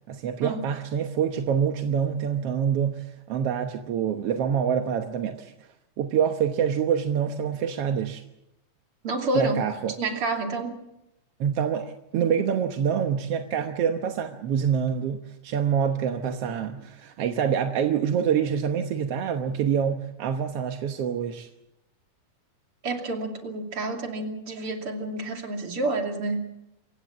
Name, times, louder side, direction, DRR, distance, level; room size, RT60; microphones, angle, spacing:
voice 1, 0.1-5.5 6.0-8.2 9.3-9.9 11.4-21.5, right 8 dB, 60° right, 5 dB, 1.8 m, -26 dB
voice 2, 9.0-9.6 10.0-10.8 22.8-26.5, right 2 dB, 45° right, 3 dB, 3.4 m, -29 dB
27.0 x 16.0 x 7.3 m, 0.87 s
omnidirectional pair, 3.6 m